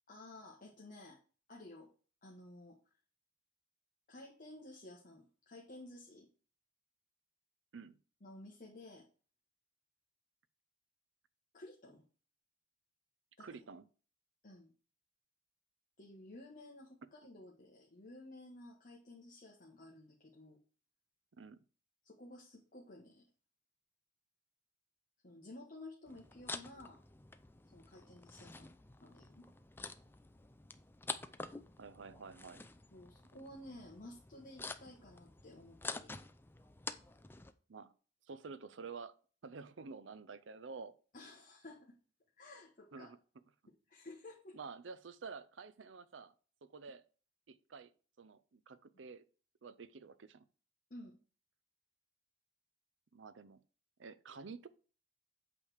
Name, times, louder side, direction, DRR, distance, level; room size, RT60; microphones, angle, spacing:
voice 1, 0.1-1.2 1.5-1.9 2.2-2.8 4.1-6.3 8.2-9.0 11.5-12.0 13.4-13.5 14.4-14.7 16.0-20.6 22.0-23.2 25.2-27.0 27.7-29.5 32.9-36.1 41.1-41.9 42.4-43.1 43.9-44.6 50.9-51.2, left 1 dB, 45° left, 1.4 m, -54 dB
voice 2, 13.4-13.9 21.3-21.6 31.8-32.6 37.7-37.9 38.3-39.1 39.4-41.0 42.9-43.2 44.5-46.3 46.7-47.0 47.5-47.9 48.2-49.2 49.6-50.4 53.1-53.6 54.0-54.7, right 4 dB, 75° right, 0.6 m, -50 dB
sound 1, 26.1-37.5, left 3 dB, 10° left, 0.4 m, -49 dB
8.4 x 3.4 x 6.4 m
head